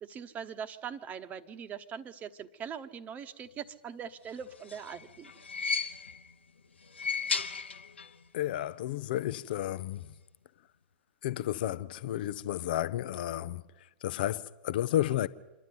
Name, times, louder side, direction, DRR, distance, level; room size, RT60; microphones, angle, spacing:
voice 1, 0.0-5.3, right 7 dB, 25° right, 1.1 m, -41 dB
sound 1, 4.4-6.3 6.8-8.2 8.5-8.6 9.7-9.8, left 5 dB, 80° left, 1.1 m, -35 dB
voice 2, 8.3-10.1 11.2-15.3, left 13 dB, 55° left, 0.7 m, -32 dB
26.5 x 11.5 x 9.5 m
figure-of-eight pair, 100°, 6 cm